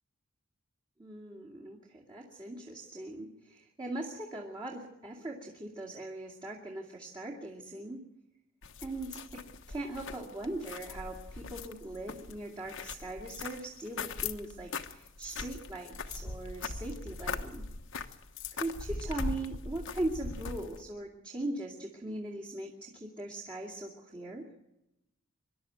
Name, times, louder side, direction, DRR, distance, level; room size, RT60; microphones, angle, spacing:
voice 1, 1.0-8.0 8.8-9.4 9.7-17.6 18.5-24.5, right 2 dB, 25° right, -3 dB, 2.4 m, -40 dB
sound 1, 8.6-20.8, left 4 dB, 60° left, 1.2 m, -40 dB
24.5 x 12.0 x 9.4 m, 0.89 s
head